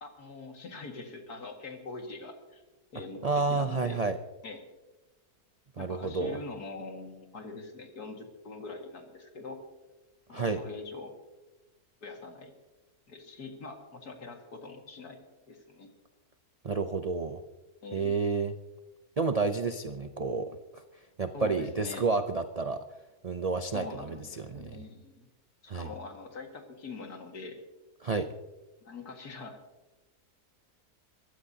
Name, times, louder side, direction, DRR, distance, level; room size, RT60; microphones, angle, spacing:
voice 1, 0.0-2.6 2.9-4.0 4.4-4.6 5.8-9.6 10.3-11.1 12.0-12.5 13.1-15.2 15.5-15.9 17.8-18.2 21.3-22.0 23.7-25.3 25.6-27.6 28.8-29.6, left 3 dB, 75° left, 3 dB, 2.5 m, -43 dB
voice 2, 3.2-4.2 5.8-6.4 10.3-10.6 16.6-17.4 17.9-18.5 19.2-20.5 20.7-20.8 21.2-22.8 23.2-24.8 25.7-25.9 28.0-28.3, right 4 dB, 65° right, 8 dB, 0.3 m, -30 dB
23.0 x 15.0 x 2.8 m, 1.1 s
omnidirectional pair, 1.7 m